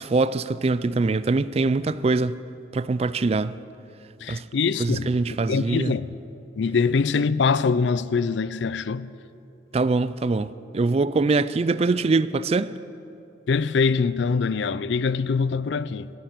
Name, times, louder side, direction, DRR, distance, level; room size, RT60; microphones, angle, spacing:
voice 1, 0.0-2.4 2.7-3.6 4.3-4.4 4.8-5.9 9.7-12.7, right 3 dB, 35° right, 0.3 m, -23 dB
voice 2, 4.2-5.1 5.5-6.2 6.6-9.1 13.5-16.1, left 5 dB, 70° left, 0.4 m, -23 dB
14.0 x 10.5 x 8.8 m
head